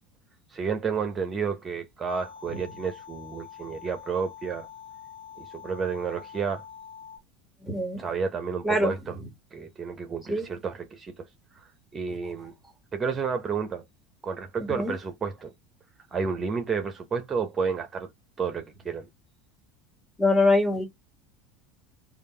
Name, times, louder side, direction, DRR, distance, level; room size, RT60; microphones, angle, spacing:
voice 1, 0.5-4.7 5.4-6.6 8.0-9.1 9.5-11.3 11.5-12.5 12.9-13.8 14.2-15.5 16.1-18.1 18.4-19.1, right 5 dB, 25° right, 0.9 m, -31 dB
sound 1, 2.1-7.2, left 8 dB, 30° left, 1.8 m, -45 dB
voice 2, 7.6-8.0 8.6-8.9 10.3-10.5 14.7-14.9 20.2-20.8, left 2 dB, ahead, 1.9 m, -23 dB
5.0 x 2.5 x 3.2 m
figure-of-eight pair, 70°, 0 cm